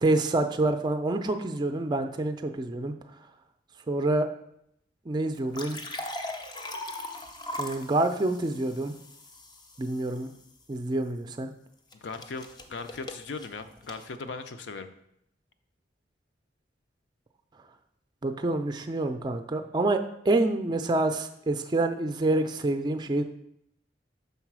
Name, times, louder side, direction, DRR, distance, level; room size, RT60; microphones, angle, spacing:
voice 1, 0.0-2.9 3.9-4.3 5.1-5.8 7.6-8.9 9.8-10.3 10.7-11.5 18.2-23.2, right 2 dB, 25° right, 7 dB, 0.4 m, -27 dB
sound 1, 5.3-10.4 11.9-14.0, left 1 dB, 25° left, 0.6 m, -39 dB
voice 2, 11.9-14.9, left 4 dB, 80° left, 9 dB, 0.5 m, -38 dB
5.5 x 4.0 x 6.0 m, 0.76 s
head